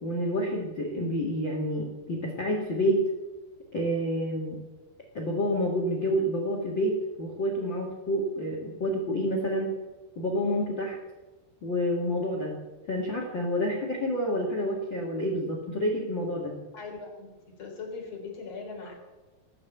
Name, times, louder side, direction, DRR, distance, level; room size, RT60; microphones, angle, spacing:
voice 1, 0.0-3.1 3.7-4.6 5.1-9.8 10.1-11.0 11.6-12.5 12.9-16.6, equal, 85° left, -1 dB, 1.0 m, -28 dB
voice 2, 16.7-17.3 17.6-19.0, left 4 dB, 35° left, 0 dB, 3.9 m, -39 dB
19.5 x 7.4 x 8.2 m, 1.2 s
omnidirectional pair, 5.9 m